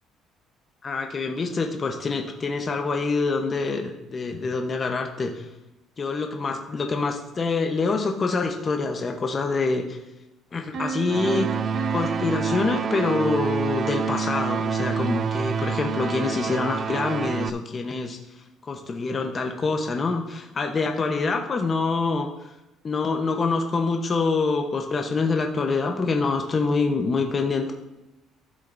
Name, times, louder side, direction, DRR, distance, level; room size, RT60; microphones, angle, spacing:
voice 1, 0.8-5.4 6.0-10.0 10.5-11.5 11.9-18.2 18.6-22.3 22.8-27.7, left 4 dB, 25° left, 3 dB, 0.9 m, -26 dB
Piano, 10.7-13.6, right 6 dB, 50° right, 1.3 m, -34 dB
sound 1, 11.1-17.5, right 6 dB, 35° right, 0.3 m, -27 dB
13.0 x 7.6 x 2.6 m, 0.95 s
cardioid pair, 145°, 0 cm